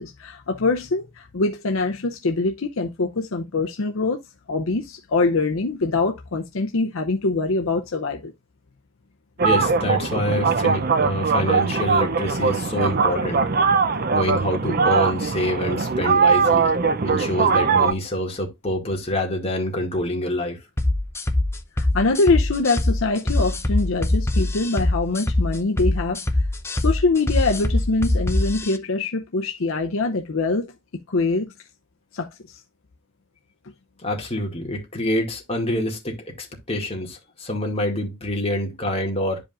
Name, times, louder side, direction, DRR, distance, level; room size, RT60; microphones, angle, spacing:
voice 1, 0.0-4.2 4.5-8.3 21.8-26.2 26.8-30.7 31.1-31.5 32.1-32.6, left 3 dB, 70° left, 0.7 m, -24 dB
voice 2, 9.4-13.4 14.1-16.7 17.0-20.6 34.0-39.4, left 1 dB, 30° left, 2.1 m, -26 dB
sound 1, 9.4-17.9, right 5 dB, 45° right, 0.6 m, -21 dB
sound 2, 20.8-28.8, left 1 dB, 10° left, 0.7 m, -23 dB
11.5 x 5.1 x 2.5 m
head